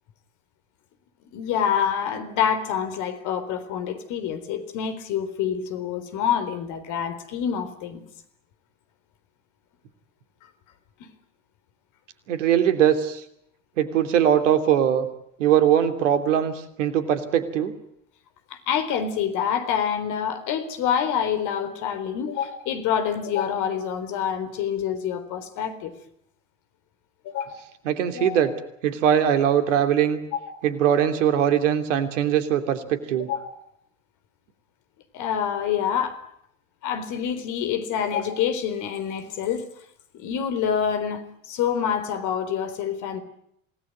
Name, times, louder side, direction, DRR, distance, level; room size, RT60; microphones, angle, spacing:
voice 1, 1.3-8.0 11.0-11.1 18.5-25.9 27.2-27.6 28.1-28.6 30.3-30.7 33.3-33.6 35.1-36.2 36.8-39.7 40.1-43.2, left 8 dB, 50° left, 10 dB, 4.1 m, -27 dB
voice 2, 12.3-13.2 13.8-15.1 15.4-16.5 16.8-17.7 27.8-28.5 28.8-30.2 30.6-33.3, right 9 dB, 65° right, 9 dB, 2.9 m, -21 dB
28.0 x 19.0 x 9.5 m, 0.74 s
figure-of-eight pair, 75°, 39 cm